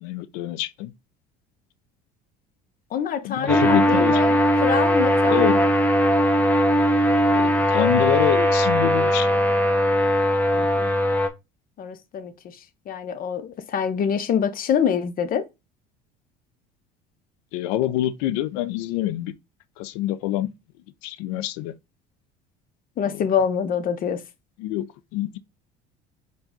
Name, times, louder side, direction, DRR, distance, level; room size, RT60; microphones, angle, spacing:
voice 1, 0.0-0.9 3.2-4.2 5.3-5.6 7.4-9.4 17.5-19.3 19.8-20.5 21.0-21.8 24.6-25.4, left 14 dB, 70° left, 0.5 m, -26 dB
voice 2, 2.9-5.7 10.5-10.9 11.8-15.5 23.0-24.2, left 7 dB, 45° left, 0.8 m, -26 dB
sound 1, 3.5-11.3, equal, 5° left, 0.8 m, -19 dB
4.7 x 2.4 x 3.8 m
hypercardioid pair, 75°, 21 cm